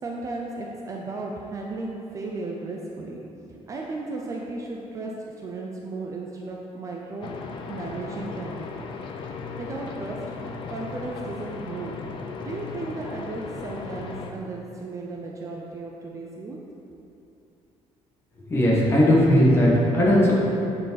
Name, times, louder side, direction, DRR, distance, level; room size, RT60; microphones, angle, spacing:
voice 1, 0.0-3.2 3.5-8.7 9.6-10.3 10.7-12.0 12.4-16.6, right 3 dB, 30° right, -1 dB, 0.5 m, -35 dB
sound 1, 7.2-14.3, left 4 dB, 45° left, 0.5 m, -36 dB
voice 2, 18.5-20.3, equal, 20° left, -5 dB, 1.3 m, -18 dB
9.0 x 4.6 x 4.1 m, 2.8 s
cardioid pair, 175°, 12 cm